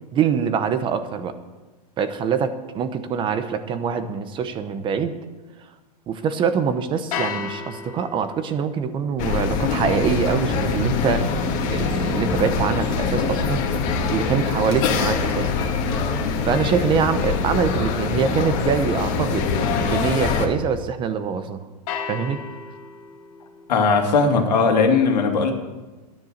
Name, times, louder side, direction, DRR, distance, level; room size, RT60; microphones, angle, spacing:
voice 1, 0.1-1.3 2.0-5.1 6.1-11.3 11.7-13.6 14.1-15.5 16.4-19.5 19.8-21.6 22.1-22.4, right 6 dB, 25° right, 10 dB, 0.9 m, -24 dB
sound 1, 7.1-13.2 21.9-23.8, left 7 dB, 60° left, 2.1 m, -36 dB
sound 2, 9.2-20.5, left 5 dB, 40° left, 1.8 m, -23 dB
voice 2, 23.7-25.5, left 4 dB, 85° left, 3 dB, 2.5 m, -18 dB
12.5 x 10.5 x 6.5 m, 1.2 s
supercardioid pair, 150°, 21 cm